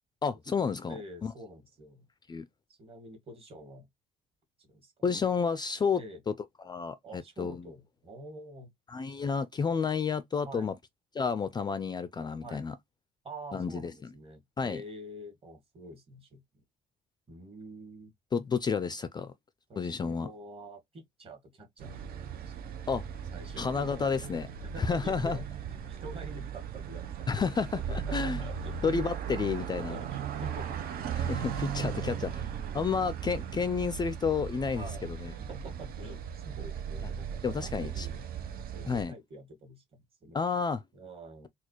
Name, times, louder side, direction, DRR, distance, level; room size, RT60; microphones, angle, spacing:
voice 1, 0.2-1.3 2.3-2.4 5.0-6.0 6.3-6.4 6.6-7.6 8.9-10.8 11.1-12.7 13.5-13.9 14.6-14.8 18.3-19.3 19.8-20.3 22.9-23.0 23.6-24.5 24.8-25.4 27.3-28.4 28.8-30.0 31.1-32.3 32.7-35.3 37.4-38.1 38.9-39.1 40.3-40.8, left 5 dB, 25° left, 0.4 m, -31 dB
voice 2, 0.9-2.0 2.8-3.9 4.6-4.9 5.9-6.2 7.0-8.7 10.5-10.7 12.4-12.6 13.2-16.6 17.3-18.1 19.7-22.6 23.3-24.3 24.6-25.4 25.9-27.3 27.7-28.7 29.2-31.4 31.7-32.6 34.7-35.1 35.4-38.2 38.7-40.4 40.9-41.5, right 1 dB, 35° right, 1.9 m, -47 dB
sound 1, 21.8-39.0, right 8 dB, 60° right, 0.7 m, -37 dB
4.1 x 2.4 x 2.9 m
cardioid pair, 110°, 17 cm